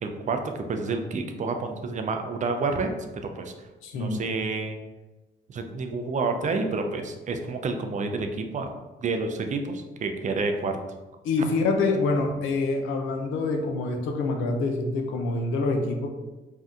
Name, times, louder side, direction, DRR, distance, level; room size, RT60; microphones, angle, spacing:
voice 1, 0.0-3.7 3.9-4.8 5.5-8.7 9.0-10.8, right 3 dB, 40° right, 5 dB, 0.4 m, -29 dB
voice 2, 3.8-4.2 11.2-16.1, left 3 dB, 90° left, 3 dB, 0.5 m, -26 dB
2.6 x 2.2 x 3.6 m, 1.1 s
cardioid pair, 90°, 20 cm